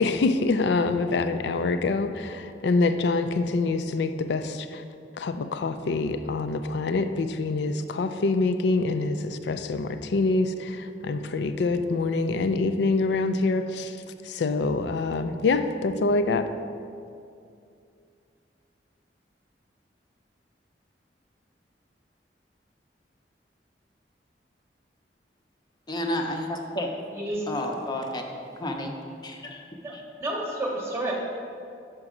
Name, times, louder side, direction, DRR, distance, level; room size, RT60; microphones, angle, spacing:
voice 1, 0.0-4.8 5.2-13.9 14.3-16.5, left 3 dB, 70° left, 10 dB, 0.4 m, -25 dB
voice 2, 25.9-26.9 27.5-29.0 29.2-29.6 29.9-30.0, left 1 dB, 25° left, 2 dB, 0.6 m, -31 dB
voice 3, 27.1-27.5 29.8-31.1, right 1 dB, 15° right, -1 dB, 0.9 m, -31 dB
5.9 x 5.4 x 4.9 m, 2.5 s
head